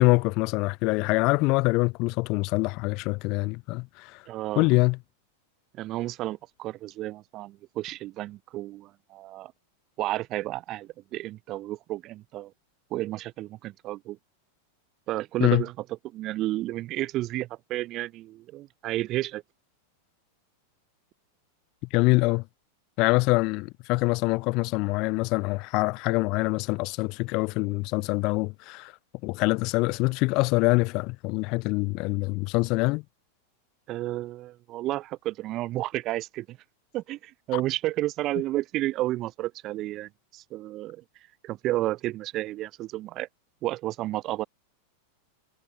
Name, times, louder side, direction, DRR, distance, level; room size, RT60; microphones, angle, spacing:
voice 1, 0.0-4.2 4.6-5.0 15.4-15.6 21.9-22.4 23.0-28.9 29.2-33.0, left 25 dB, 40° left, 2.8 m, -24 dB
voice 2, 4.3-4.7 5.7-9.5 10.0-12.5 12.9-14.2 15.1-19.4 33.9-36.6 36.9-41.0 41.4-43.3 43.6-44.4, right 16 dB, 35° right, 3.8 m, -31 dB
figure-of-eight pair, 90°, 0 cm